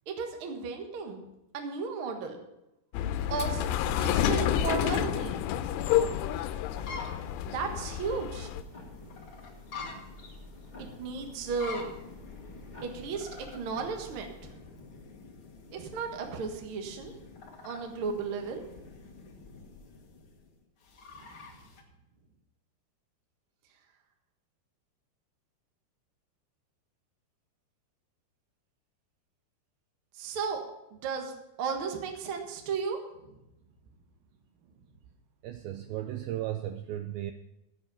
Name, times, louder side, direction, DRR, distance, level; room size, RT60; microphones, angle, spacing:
voice 1, 0.1-1.2 1.5-2.4 3.3-5.4 7.5-8.5 10.8-11.8 12.8-14.5 15.7-17.1 17.6-18.6 21.2-21.4 30.1-30.6 31.0-31.3 31.6-33.4, right 5 dB, 60° right, 3 dB, 1.4 m, -34 dB
sound 1, 2.9-8.6, left 10 dB, 85° left, 2.8 m, -29 dB
sound 2, 3.7-21.8, left 4 dB, 55° left, 1.4 m, -47 dB
sound 3, 6.6-14.5, left 2 dB, 20° left, 1.2 m, -49 dB
voice 2, 35.4-37.3, right 13 dB, 85° right, 8 dB, 2.1 m, -35 dB
15.0 x 7.8 x 5.6 m, 0.90 s
omnidirectional pair, 4.8 m